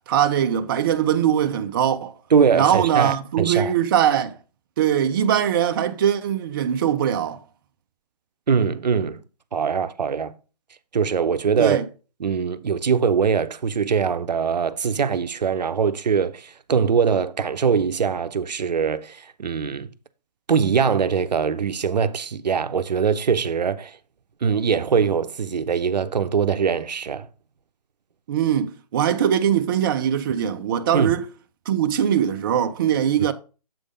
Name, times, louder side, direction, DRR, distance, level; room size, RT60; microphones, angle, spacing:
voice 1, 0.1-2.1 2.5-4.4 4.8-7.4 11.6-11.8 28.3-31.3 31.7-33.3, right 9 dB, 30° right, 0.4 m, -21 dB
voice 2, 2.3-3.7 8.5-9.2 9.5-10.3 10.9-11.8 12.2-19.9 20.5-24.0 24.4-27.3 30.9-31.1, right 6 dB, 80° right, 0.6 m, -22 dB
7.6 x 3.5 x 5.0 m
hypercardioid pair, 145°, 21 cm